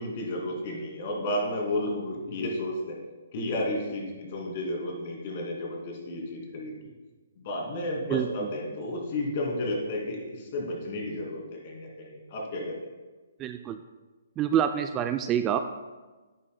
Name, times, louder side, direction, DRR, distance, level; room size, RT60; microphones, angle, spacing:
voice 1, 0.0-3.0 3.3-6.9 7.4-12.9, left 1 dB, 45° left, -1 dB, 2.5 m, -32 dB
voice 2, 13.4-13.8 14.4-15.6, right 9 dB, 20° right, 8 dB, 0.3 m, -26 dB
10.5 x 8.8 x 2.2 m, 1.3 s
figure-of-eight pair, 135°, 0 cm